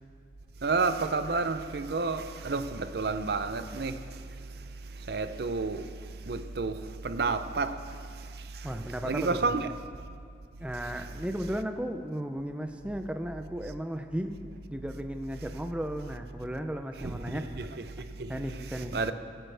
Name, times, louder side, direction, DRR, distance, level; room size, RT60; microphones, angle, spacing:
voice 1, 0.6-9.7 10.7-11.3 15.4-15.6 17.0-19.1, right 3 dB, 55° right, 0.5 m, -32 dB
voice 2, 8.6-9.5 10.6-17.5 18.3-19.0, equal, 5° right, 0.4 m, -35 dB
22.0 x 8.9 x 3.4 m
head